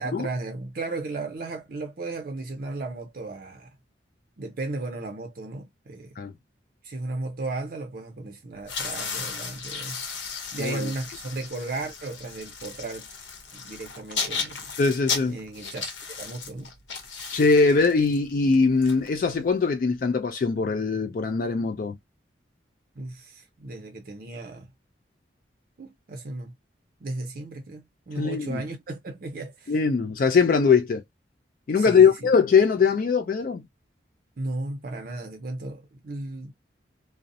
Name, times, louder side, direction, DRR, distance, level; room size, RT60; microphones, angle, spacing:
voice 1, 0.0-3.8 4.4-6.2 6.8-10.0 10.5-13.1 13.5-14.7 15.3-15.9 16.2-16.7 23.0-24.7 25.8-26.5 27.0-29.8 31.8-32.3 34.4-36.5, right 2 dB, 50° right, 0.5 m, -35 dB
sound 1, 8.6-19.6, left 5 dB, 85° left, 0.8 m, -35 dB
voice 2, 10.6-10.9 14.8-15.4 17.3-22.0 28.2-28.6 29.7-31.0 31.7-33.6, left 5 dB, 50° left, 0.3 m, -21 dB
2.6 x 2.0 x 2.5 m
head